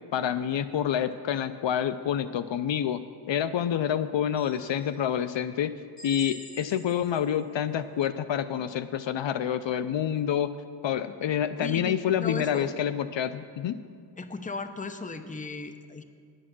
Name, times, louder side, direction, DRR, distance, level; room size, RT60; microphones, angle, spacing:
voice 1, 0.1-3.0 3.3-5.7 6.0-10.5 10.8-13.8, left 9 dB, 70° left, 13 dB, 0.5 m, -28 dB
sound 1, 4.4-5.2 6.0-7.4, left 1 dB, 45° left, 1.8 m, -47 dB
voice 2, 11.6-12.7 14.2-16.0, left 4 dB, 15° left, 9 dB, 0.6 m, -36 dB
10.0 x 8.8 x 6.0 m, 2.2 s
wide cardioid pair, 80°, 48 cm